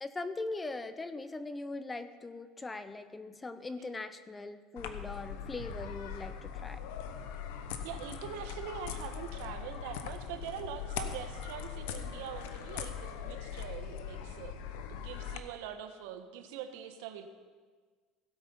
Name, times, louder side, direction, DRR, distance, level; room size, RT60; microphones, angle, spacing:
voice 1, 0.0-6.9, left 3 dB, 15° left, 12 dB, 0.6 m, -40 dB
sound 1, 4.8-15.4, left 8 dB, 90° left, 1.0 m, -41 dB
sound 2, 5.6-8.1, right 7 dB, 50° right, 1.4 m, -54 dB
voice 2, 7.8-14.6 14.9-17.3, right 9 dB, 85° right, 7 dB, 1.2 m, -43 dB
16.0 x 8.4 x 5.6 m, 1.5 s
cardioid pair, 145°, 0 cm